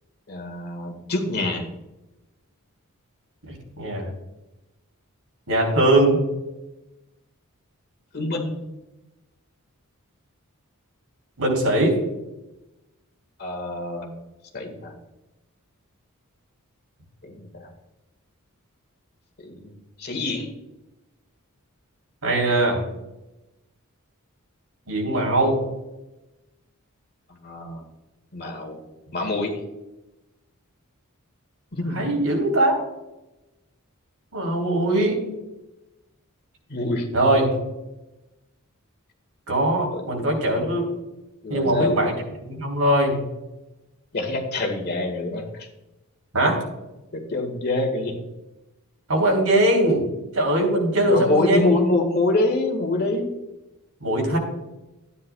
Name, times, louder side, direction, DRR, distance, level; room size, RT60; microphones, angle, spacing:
voice 1, 0.3-1.7 8.1-8.5 13.4-14.1 14.5-14.9 17.2-17.7 19.4-19.7 20.0-20.5 27.3-27.8 28.3-28.8 29.1-29.6 31.7-32.0 36.7-37.1 39.9-40.4 41.4-42.0 44.1-45.7 47.1-48.2 51.1-53.3, left 2 dB, 45° left, 3 dB, 1.8 m, -25 dB
voice 2, 3.5-4.1 5.5-6.2 11.4-12.0 22.2-22.8 24.9-25.6 31.9-32.8 34.3-35.2 37.1-37.5 39.5-40.8 41.5-42.1 42.4-43.2 46.3-46.6 49.1-50.1 50.3-51.7 54.0-54.4, right 1 dB, 85° right, 0 dB, 3.4 m, -21 dB
13.0 x 9.7 x 2.3 m, 0.99 s
head